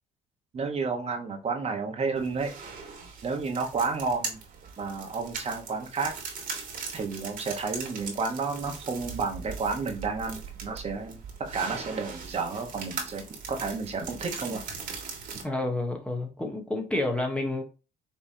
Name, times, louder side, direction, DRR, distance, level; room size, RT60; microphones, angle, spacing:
voice 1, 0.5-2.5 3.2-4.4 4.8-6.1 6.9-14.6, right 4 dB, 40° right, 3 dB, 1.2 m, -31 dB
sound 1, 2.2-15.4, right 5 dB, 55° right, 1.8 m, -40 dB
voice 2, 15.4-17.6, left 2 dB, 5° left, 2 dB, 1.1 m, -29 dB
5.4 x 3.4 x 2.8 m, 0.31 s
cardioid pair, 110°, 17 cm